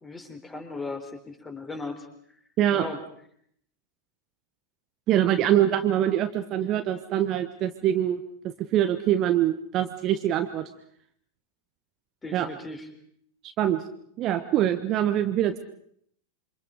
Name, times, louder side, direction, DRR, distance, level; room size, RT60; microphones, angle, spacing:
voice 1, 0.0-2.1 2.7-3.0 12.2-12.9, left 3 dB, 15° left, 6 dB, 4.0 m, -37 dB
voice 2, 5.1-8.2 8.6-10.7 12.3-12.5 13.6-13.8 14.2-15.6, right 11 dB, 35° right, 8 dB, 1.3 m, -24 dB
27.5 x 25.0 x 5.1 m, 0.66 s
figure-of-eight pair, 90°, 0 cm